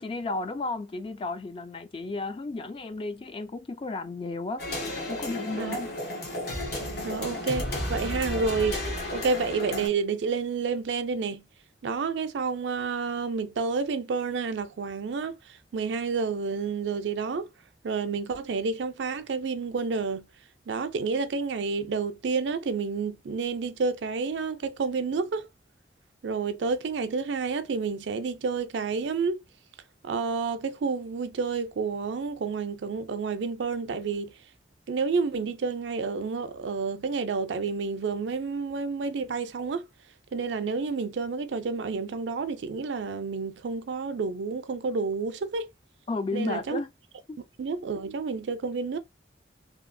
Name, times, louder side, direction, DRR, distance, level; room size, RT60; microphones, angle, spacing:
voice 1, 0.0-4.6 5.1-5.9 46.1-46.9 47.3-47.4, left 3 dB, 30° left, 0.3 m, -33 dB
sound 1, 4.6-9.9, left 1 dB, 60° left, 1.1 m, -33 dB
voice 2, 7.0-8.8 9.1-11.4 11.8-15.4 15.7-17.5 17.8-20.3 20.7-25.5 26.2-29.4 30.0-34.3 34.9-39.9 40.3-45.7 46.3-46.8 47.6-49.0, right 4 dB, 70° right, 0.4 m, -29 dB
2.8 x 2.3 x 2.5 m
head